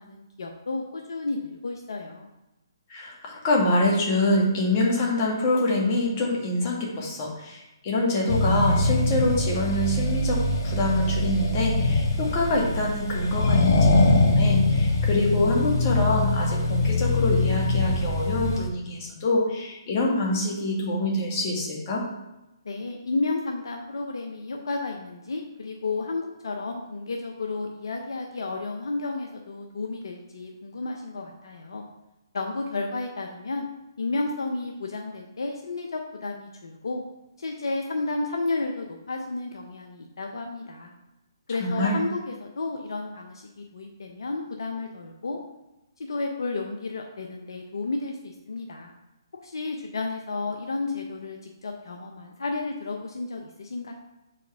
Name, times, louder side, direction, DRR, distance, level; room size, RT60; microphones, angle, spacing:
voice 1, 0.0-2.3 22.6-31.8 32.3-33.7 34.0-37.0 37.4-40.9 41.5-45.4 46.0-48.9 49.4-53.9, left 3 dB, 75° left, 2 dB, 0.8 m, -32 dB
voice 2, 2.9-22.0 41.6-42.0, left 2 dB, 35° left, -2 dB, 1.8 m, -25 dB
Accelerating revving vroom, 8.3-18.7, left 2 dB, 55° left, 1.4 m, -23 dB
7.2 x 4.7 x 3.5 m, 0.95 s
hypercardioid pair, 140°, 2 cm